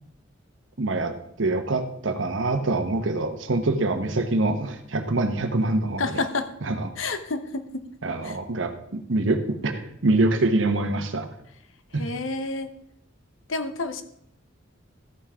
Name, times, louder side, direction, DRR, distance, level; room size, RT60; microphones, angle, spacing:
voice 1, 0.8-6.2 6.6-6.9 8.0-11.3 11.9-12.0, right 2 dB, 70° right, 8 dB, 1.1 m, -25 dB
voice 2, 6.0-6.5 7.0-7.8 8.2-8.4 12.0-12.7 13.5-14.0, left 3 dB, 80° left, 11 dB, 0.9 m, -29 dB
14.0 x 5.8 x 4.9 m, 0.70 s
head